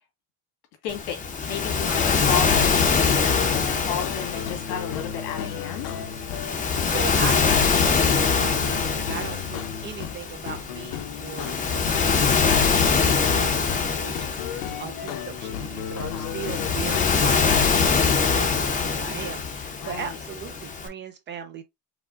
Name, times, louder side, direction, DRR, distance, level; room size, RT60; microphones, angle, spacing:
voice 1, 0.8-1.2 1.5-5.9 15.9-16.3 19.8-20.2, left 8 dB, 90° left, 2.0 m, -32 dB
Waves surf, 0.9-20.9, left 5 dB, 20° left, 0.6 m, -24 dB
sound 1, 2.9-10.2 10.5-13.9 14.1-17.2, left 8 dB, 70° left, 0.9 m, -35 dB
voice 2, 6.6-21.6, right 7 dB, 25° right, 0.4 m, -38 dB
4.9 x 2.2 x 3.6 m
cardioid pair, 155°, 45 cm